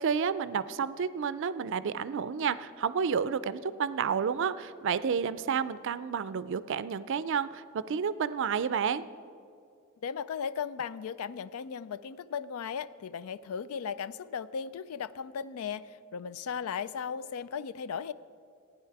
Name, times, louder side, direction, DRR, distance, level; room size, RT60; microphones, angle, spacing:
voice 1, 0.0-9.0, right 6 dB, 60° right, 15 dB, 0.4 m, -30 dB
voice 2, 10.0-18.1, left 7 dB, 85° left, 17 dB, 0.4 m, -36 dB
15.5 x 9.5 x 4.7 m, 2.5 s
head